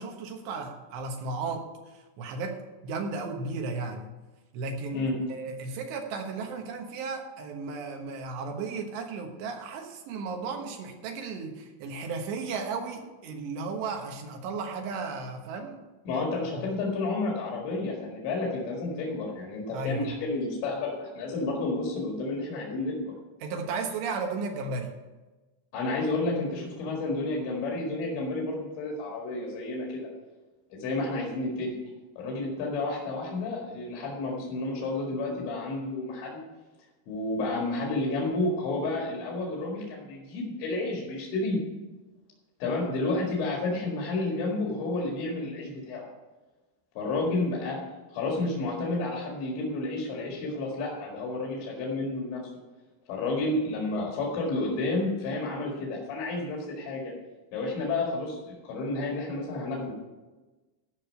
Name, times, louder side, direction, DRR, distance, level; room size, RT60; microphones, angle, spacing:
voice 1, 0.0-1.7 1.9-2.6 2.8-4.0 4.5-15.8 16.1-16.2 16.6-16.7 19.7-20.1 23.4-25.0, right 4 dB, 75° right, 3 dB, 3.4 m, -34 dB
voice 2, 16.1-23.1 25.7-30.1 30.7-31.8 32.2-36.4 37.1-41.6 42.6-46.1 47.0-47.8 48.1-52.4 53.1-57.1 57.5-59.9, left 2 dB, 80° left, -2 dB, 4.3 m, -31 dB
14.5 x 5.4 x 6.4 m, 1.2 s
omnidirectional pair, 5.1 m